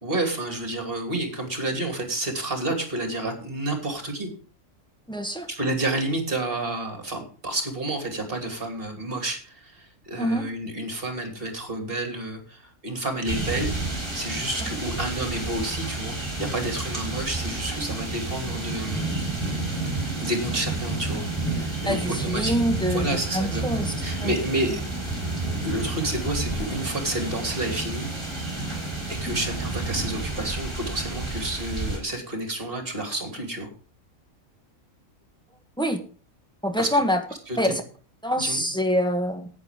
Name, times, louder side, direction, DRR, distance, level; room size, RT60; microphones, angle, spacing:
voice 1, 0.0-4.3 5.5-13.7 14.1-19.1 20.2-21.2 21.5-22.5 22.9-24.8 25.6-28.1 29.1-33.7 36.8-37.0 37.5-37.7 38.4-38.6, right 1 dB, 40° right, 5 dB, 3.1 m, -30 dB
voice 2, 5.1-5.5 10.2-10.4 21.8-23.9 24.2-24.4 35.8-36.0 36.6-37.2 37.6-37.8 38.2-39.5, equal, 5° left, 5 dB, 1.4 m, -25 dB
sound 1, 13.3-32.0, right 2 dB, 20° right, 4.5 m, -30 dB
11.0 x 9.2 x 5.2 m, 0.39 s
omnidirectional pair, 1.5 m